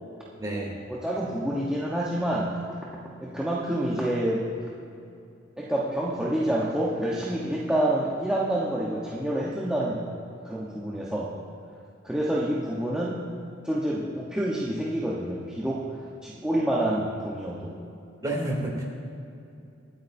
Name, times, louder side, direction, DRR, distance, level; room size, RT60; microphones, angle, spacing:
voice 1, 0.4-0.7 18.2-18.8, right 1 dB, 20° right, -3 dB, 3.0 m, -29 dB
voice 2, 0.9-2.6 3.2-4.5 5.6-10.0 10.4-11.3 12.0-13.2 13.6-15.9 16.2-17.8, right 1 dB, 5° right, -6 dB, 1.1 m, -27 dB
25.5 x 8.6 x 2.7 m, 2.6 s
head